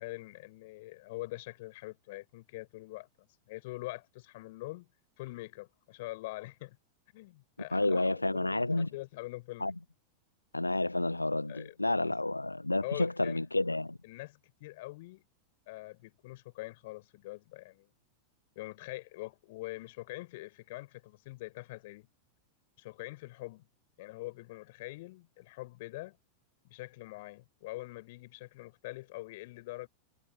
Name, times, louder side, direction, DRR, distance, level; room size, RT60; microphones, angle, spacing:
voice 1, 0.0-4.9 5.2-6.8 7.1-9.7 11.5-12.1 12.8-13.4 14.0-15.2 15.7-17.9 18.5-22.1 22.8-23.7 24.0-26.2 26.6-29.9, left 20 dB, 50° left, 6.0 m, -44 dB
voice 2, 7.7-8.9 9.6-9.7 10.5-14.0, left 2 dB, 85° left, 0.6 m, -30 dB
figure-of-eight pair, 90°, 0 cm